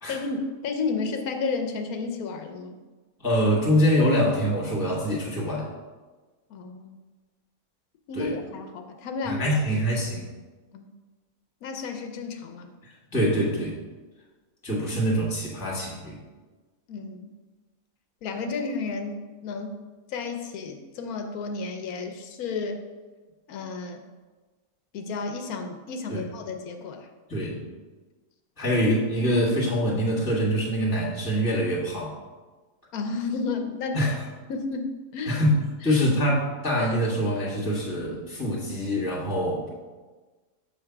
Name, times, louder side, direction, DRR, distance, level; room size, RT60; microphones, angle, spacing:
voice 1, 0.1-2.8 6.5-7.0 8.1-9.6 10.7-10.9 11.6-12.7 16.9-17.3 18.2-19.8 20.1-22.8 23.5-24.0 24.9-27.1 28.7-28.8 32.9-34.0 34.5-35.4 35.8-36.0, left 4 dB, 85° left, 5 dB, 1.2 m, -32 dB
voice 2, 3.2-5.7 8.1-8.3 9.2-10.3 13.1-13.8 14.6-16.2 26.1-26.2 27.3-27.6 28.6-32.1 33.9-34.1 35.3-35.6 35.8-39.7, equal, 15° left, -5 dB, 1.7 m, -24 dB
7.0 x 3.4 x 5.8 m, 1.3 s
omnidirectional pair, 1.5 m